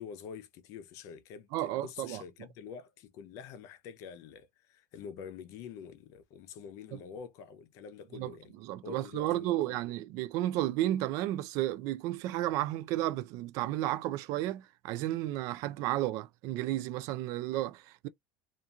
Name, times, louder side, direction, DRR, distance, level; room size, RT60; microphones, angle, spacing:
voice 1, 0.0-8.5 8.8-9.8, left 7 dB, 50° left, 0.6 m, -46 dB
voice 2, 1.5-2.2 8.1-8.3 8.7-18.1, right 14 dB, 55° right, 0.4 m, -32 dB
2.8 x 2.5 x 2.4 m
cardioid pair, 150°, 7 cm